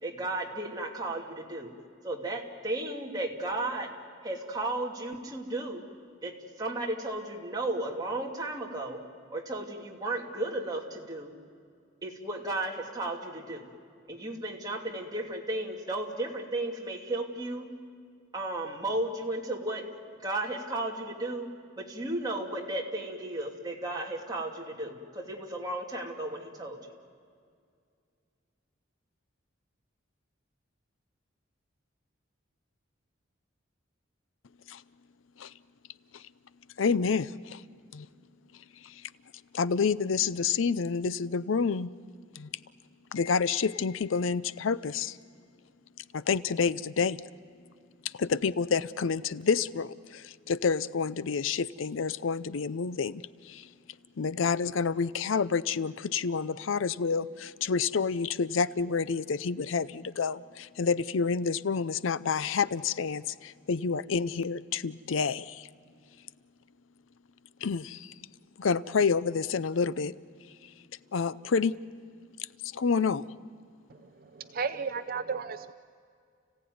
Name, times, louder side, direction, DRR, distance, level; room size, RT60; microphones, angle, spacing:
voice 1, 0.0-1.7 2.0-3.9 4.2-5.9 6.2-9.0 9.3-11.3 12.0-13.7 14.1-17.7 18.3-20.0 20.2-21.5 21.8-26.8, right 2 dB, 20° right, -1 dB, 2.7 m, -34 dB
voice 2, 36.8-37.6 37.9-38.1 38.8-39.0 39.5-41.9 42.3-42.5 43.1-45.2 46.1-47.2 48.0-53.7 54.2-65.7 67.6-68.1 68.6-70.1 71.1-71.7 72.6-73.3, left 5 dB, 80° left, 17 dB, 0.5 m, -29 dB
voice 3, 73.9-75.7, right 5 dB, 45° right, 11 dB, 0.6 m, -34 dB
30.0 x 16.5 x 9.4 m, 2.3 s
head